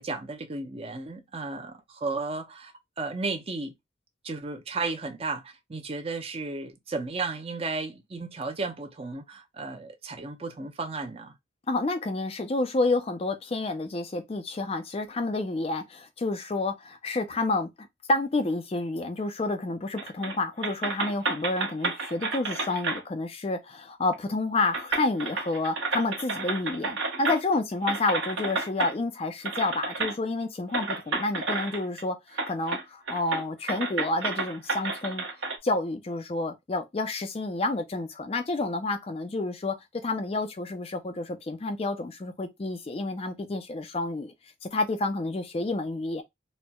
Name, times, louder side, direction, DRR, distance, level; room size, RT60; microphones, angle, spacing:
voice 1, 0.0-3.7 4.2-11.3, right 3 dB, 30° right, 0.6 m, -34 dB
voice 2, 11.7-35.2 35.6-39.8 40.0-44.3 44.6-46.2, left 2 dB, 30° left, 0.4 m, -29 dB
sound 1, 20.0-20.4 20.6-23.0 24.1-24.2 24.7-27.5 27.9-28.9 29.4-30.1 30.7-32.0 32.3-32.8 33.1-35.6, right 3 dB, 70° right, 1.1 m, -31 dB
4.2 x 2.1 x 2.2 m
head